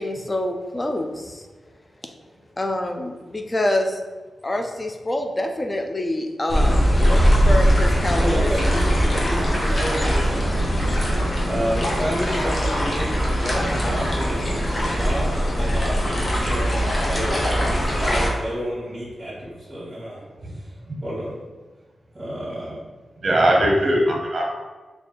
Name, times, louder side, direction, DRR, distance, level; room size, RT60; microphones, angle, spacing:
voice 1, 0.0-1.5 2.6-4.0 4.4-6.9 7.2-8.7, left 1 dB, 20° left, 4 dB, 0.4 m, -26 dB
sound 1, 6.5-18.3, equal, 40° left, 0.8 m, -21 dB
voice 2, 8.2-10.5 11.5-20.7 21.0-21.3 22.1-22.8, equal, 25° right, -9 dB, 1.3 m, -30 dB
voice 3, 23.2-24.4, right 1 dB, 40° right, -1 dB, 0.8 m, -20 dB
3.3 x 2.3 x 4.1 m, 1.3 s
wide cardioid pair, 100°, 0 cm